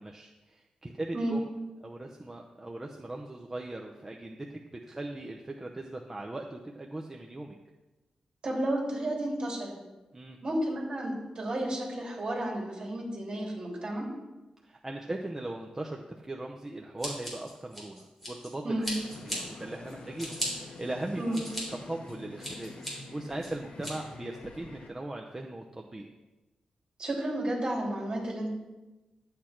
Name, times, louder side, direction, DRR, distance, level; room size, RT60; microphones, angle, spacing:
voice 1, 0.0-1.4 1.8-7.6 10.1-10.4 14.6-18.9 19.2-21.4 21.9-26.1, right 2 dB, 15° right, 1 dB, 0.7 m, -39 dB
voice 2, 8.4-9.8 10.4-14.1 18.6-18.9 21.2-21.4 27.0-28.5, right 1 dB, 40° right, -2 dB, 3.4 m, -32 dB
Scissors, 17.0-18.5 18.8-19.4 19.9-20.5 21.0-21.6 22.1-22.9 23.4-23.9, equal, 5° left, 4.0 m, -37 dB
sound 1, 18.9-24.9, left 3 dB, 65° left, 1.2 m, -47 dB
11.5 x 8.5 x 4.5 m, 1.1 s
wide cardioid pair, 150°, 2 cm